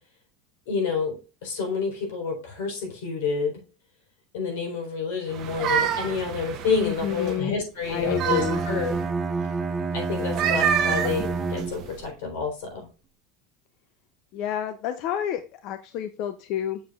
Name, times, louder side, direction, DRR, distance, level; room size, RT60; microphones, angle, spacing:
voice 1, 0.7-3.6 4.3-8.9 9.9-12.9, left 5 dB, 80° left, 2 dB, 4.0 m, -29 dB
sound 1, 5.3-7.4 7.9-9.1 10.2-12.0, right 8 dB, 30° right, 1.0 m, -28 dB
voice 2, 6.7-7.5 7.9-8.6 14.3-16.8, left 10 dB, 45° left, 10 dB, 0.5 m, -29 dB
Bowed string instrument, 8.0-12.1, right 4 dB, 10° right, 0.6 m, -29 dB
7.3 x 6.9 x 2.4 m, 0.34 s
supercardioid pair, 170°, 0 cm